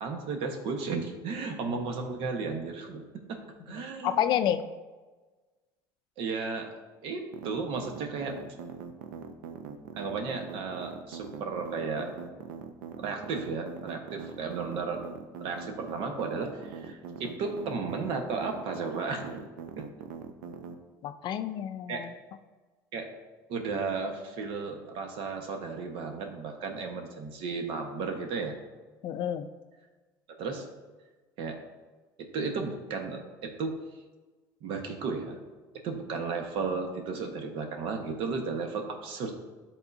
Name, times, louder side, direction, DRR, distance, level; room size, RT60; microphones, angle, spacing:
voice 1, 0.0-3.0 3.3-3.4 3.7-4.2 6.2-6.7 7.0-8.4 9.9-12.1 13.0-15.0 15.4-19.4 19.8-19.9 21.9-22.0 22.9-23.1 23.5-28.6 30.4-30.6 31.4-31.6 32.2-33.7 34.6-35.4 35.8-39.4, right 4 dB, 60° right, 4 dB, 1.1 m, -34 dB
voice 2, 3.7-4.6 21.0-22.1 29.0-29.5, left 10 dB, 50° left, 10 dB, 0.4 m, -29 dB
sound 1, 7.3-20.7, right 7 dB, 90° right, 0.6 m, -42 dB
11.0 x 3.7 x 2.6 m, 1.3 s
supercardioid pair, 120°, 10 cm